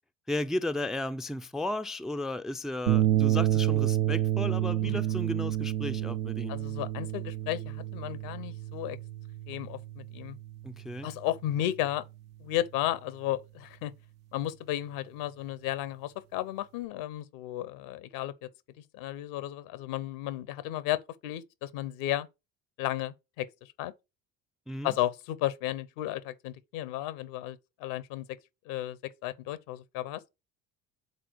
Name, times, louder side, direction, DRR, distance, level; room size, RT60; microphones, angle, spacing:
voice 1, 0.3-6.6 10.6-11.1 24.7-24.9, left 1 dB, ahead, 0.4 m, -34 dB
sound 1, 2.9-11.3, right 13 dB, 85° right, 0.9 m, -29 dB
voice 2, 6.5-9.0 9.5-10.4 11.0-12.0 12.4-13.9 14.3-18.5 18.9-22.3 22.8-23.5 23.8-23.9 24.8-28.3 28.7-30.2, left 13 dB, 75° left, 0.9 m, -34 dB
6.8 x 3.8 x 4.6 m
hypercardioid pair, 65°, 42 cm